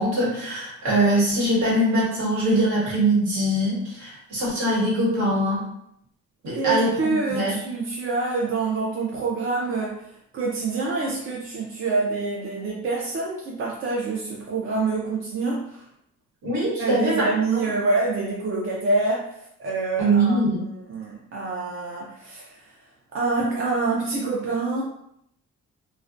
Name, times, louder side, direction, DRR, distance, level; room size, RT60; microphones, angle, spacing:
voice 1, 0.0-5.7 6.4-7.6 16.4-17.3 20.0-20.6, right 1 dB, 65° right, -6 dB, 1.3 m, -22 dB
voice 2, 6.5-15.8 16.8-22.7 23.1-24.8, right 3 dB, 45° right, -3 dB, 0.5 m, -26 dB
2.3 x 2.1 x 2.5 m, 0.76 s
cardioid pair, 90°, 30 cm